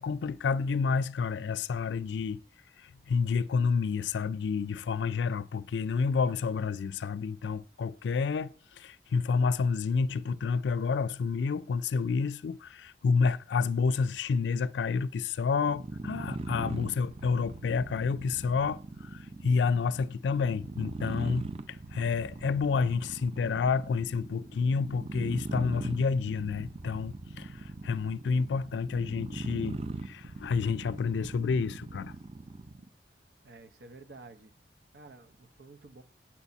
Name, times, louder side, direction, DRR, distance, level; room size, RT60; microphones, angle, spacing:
voice 1, 0.0-2.4 2.8-32.1, left 5 dB, 90° left, 0.4 m, -29 dB
sound 1, 15.6-32.9, right 2 dB, 35° right, 0.6 m, -40 dB
voice 2, 33.4-34.5 34.9-36.0, right 3 dB, 70° right, 0.9 m, -51 dB
8.7 x 4.1 x 7.0 m
head